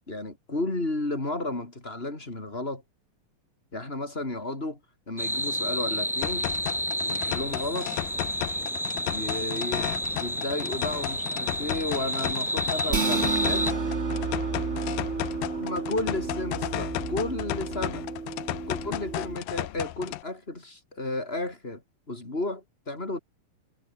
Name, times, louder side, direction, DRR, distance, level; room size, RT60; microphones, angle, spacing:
voice 1, 0.1-2.8 3.7-4.8 5.1-6.5 7.0-7.9 9.0-9.9 10.2-13.7 15.6-18.0 18.7-21.8 22.1-23.2, left 2 dB, 15° left, 4.2 m, -33 dB
sound 1, 5.2-13.7, equal, ahead, 1.4 m, -30 dB
sound 2, 6.2-20.2, left 16 dB, 80° left, 2.5 m, -34 dB
sound 3, 12.9-19.4, right 4 dB, 25° right, 1.7 m, -31 dB
omnidirectional pair, 3.9 m